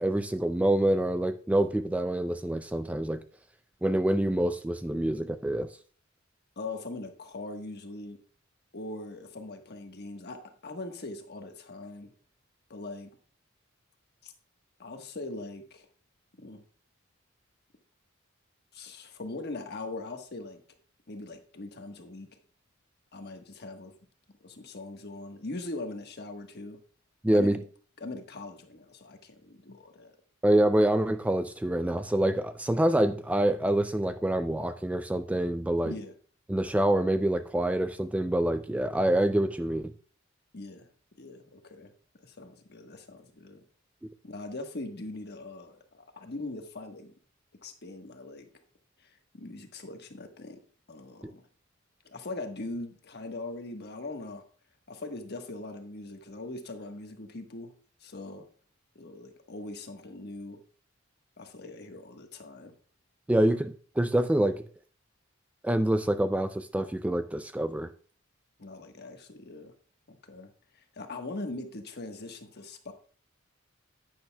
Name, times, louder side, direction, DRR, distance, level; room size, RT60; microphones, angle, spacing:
voice 1, 0.0-3.2 3.8-5.7 27.2-27.6 30.4-35.9 36.5-39.9 63.3-64.6 65.6-67.9, right 1 dB, 5° right, 10 dB, 0.3 m, -26 dB
voice 2, 6.6-8.2 8.7-12.1 12.7-13.1 14.2-14.3 14.8-15.9 16.4-16.6 18.7-20.6 21.1-22.3 23.1-23.9 24.4-26.8 27.3-27.6 28.0-30.1 35.8-36.1 40.5-40.9 41.2-41.9 42.2-43.6 44.2-47.1 47.6-48.5 49.0-50.6 50.9-51.4 52.0-54.4 54.9-57.7 58.0-58.4 58.9-60.6 61.4-62.7 63.3-63.5 68.6-69.7 70.1-72.9, left 2 dB, 55° left, 5 dB, 1.2 m, -41 dB
10.5 x 9.4 x 2.2 m, 0.43 s
head